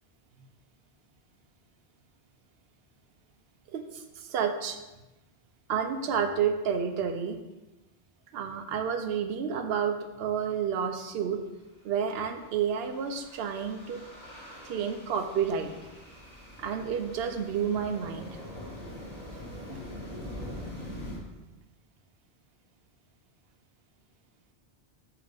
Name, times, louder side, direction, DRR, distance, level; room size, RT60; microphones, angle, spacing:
voice 1, 3.7-4.8 5.7-7.4 8.3-11.4 11.8-14.0 14.6-15.7 16.6-18.4, right 7 dB, 80° right, 7 dB, 0.8 m, -30 dB
sound 1, 12.2-21.2, left 1 dB, 40° left, 1.9 m, -43 dB
7.0 x 2.9 x 5.1 m, 1.0 s
omnidirectional pair, 1.0 m